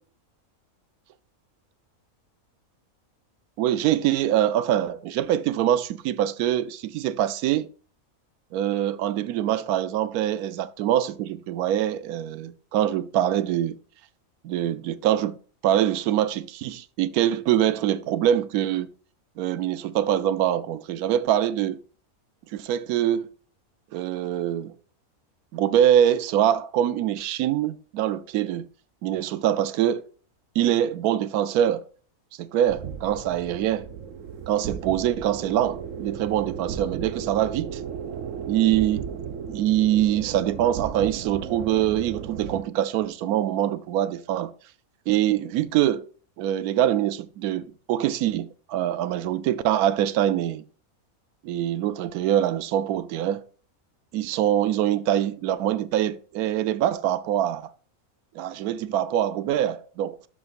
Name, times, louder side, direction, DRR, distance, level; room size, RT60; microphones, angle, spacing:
voice 1, 3.6-7.7 8.5-13.8 14.4-15.4 15.6-18.9 19.4-21.8 22.5-23.3 23.9-24.7 25.5-28.7 29.0-30.0 30.6-31.8 32.4-33.9 34.5-37.8 38.5-39.0 39.5-44.5 45.1-46.1 46.4-50.6 51.4-53.4 54.1-57.7 58.3-60.3, right 11 dB, 90° right, 1.1 m, -24 dB
sound 1, 32.7-42.6, right 7 dB, 65° right, 1.1 m, -35 dB
12.0 x 6.1 x 2.5 m
omnidirectional pair, 1.5 m